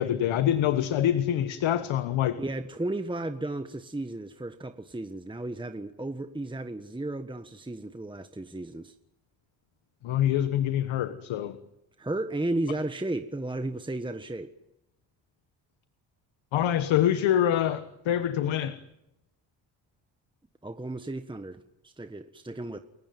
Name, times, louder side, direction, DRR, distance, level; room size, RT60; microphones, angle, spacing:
voice 1, 0.0-2.4 10.0-11.6 16.5-18.8, left 11 dB, 80° left, 11 dB, 1.4 m, -25 dB
voice 2, 2.4-8.9 12.0-14.5 20.6-22.8, right 2 dB, 10° right, 8 dB, 1.4 m, -34 dB
29.5 x 15.5 x 9.3 m, 0.87 s
cardioid pair, 70°, 46 cm